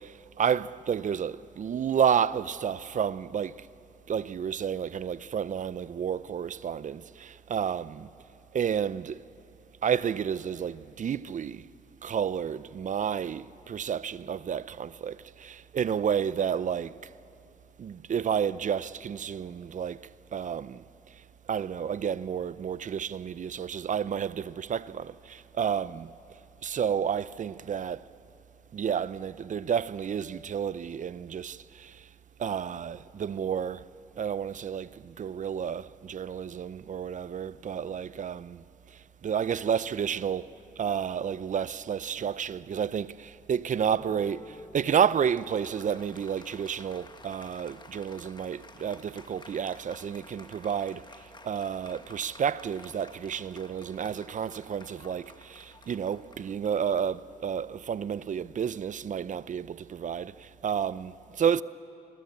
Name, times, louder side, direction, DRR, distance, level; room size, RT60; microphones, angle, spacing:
voice 1, 0.0-3.7 4.1-8.1 8.5-9.2 9.8-11.7 12.0-17.0 17.8-20.8 21.5-26.2 26.6-28.0 28.7-32.1 32.4-33.8 34.2-38.6 39.2-51.0 51.4-61.6, right 8 dB, 50° right, 0.7 m, -31 dB
Applause, 43.7-57.7, left 3 dB, 25° left, 1.5 m, -52 dB
28.0 x 22.5 x 8.6 m
cardioid pair, 70°, 16 cm